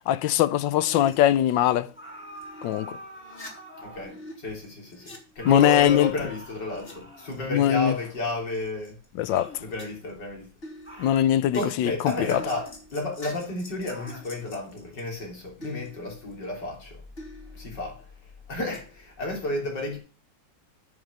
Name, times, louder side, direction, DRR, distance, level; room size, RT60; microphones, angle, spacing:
voice 1, 0.1-1.9 2.6-3.0 5.4-6.1 7.5-7.9 9.2-9.5 11.0-11.9 12.3-12.4, left 11 dB, 85° left, 1.4 m, -21 dB
sound 1, 0.8-2.8 3.1-4.3 4.6-6.9 7.2-7.8 8.2-9.0 9.3-9.4 9.7-10.2 10.6-15.2 15.6-16.7 17.2-18.1 18.7-19.0, left 1 dB, 30° left, 2.9 m, -46 dB
sound 2, 1.9-4.3 5.4-7.6 9.3-9.7 10.8-11.3 12.3-12.8 13.9-14.3, equal, 5° left, 2.6 m, -45 dB
voice 2, 3.8-9.0 9.6-10.5 11.5-17.0 17.5-18.0 18.5-20.0, left 2 dB, 65° left, 3.8 m, -32 dB
9.0 x 6.2 x 7.6 m
omnidirectional pair, 2.0 m